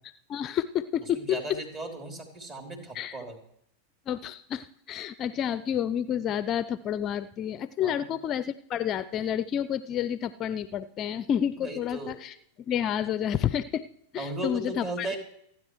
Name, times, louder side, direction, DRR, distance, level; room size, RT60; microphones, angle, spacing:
voice 1, 0.0-1.4 2.9-3.2 4.1-12.3 12.7-13.8 14.1-15.1, left 9 dB, 30° left, 15 dB, 0.5 m, -30 dB
voice 2, 1.1-3.4 7.8-8.1 11.6-12.2 14.2-15.2, right 1 dB, 30° right, 3 dB, 3.3 m, -36 dB
27.5 x 9.9 x 3.2 m, 0.70 s
figure-of-eight pair, 90°, 0 cm